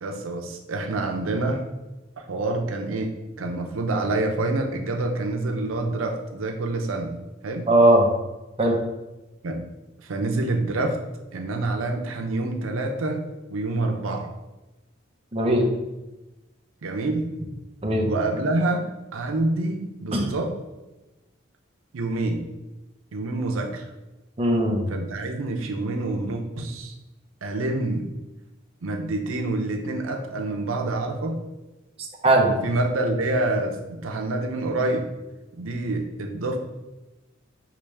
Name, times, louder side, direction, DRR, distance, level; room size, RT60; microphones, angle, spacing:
voice 1, 0.0-1.6 2.2-7.1 7.4-7.7 9.4-9.6 10.0-11.0 11.3-14.3 16.8-17.3 18.1-18.9 19.1-20.5 21.9-22.4 23.1-23.8 24.9-26.9 27.4-28.1 28.8-31.4 32.5-35.1 35.5-36.6, right 2 dB, 90° right, 3 dB, 0.6 m, -27 dB
voice 2, 7.7-8.1 8.6-8.8 15.3-15.7 17.8-18.1 20.1-20.3 24.4-24.9 32.2-32.5, right 1 dB, 30° right, 1 dB, 0.6 m, -18 dB
4.9 x 3.0 x 3.3 m, 1.0 s
head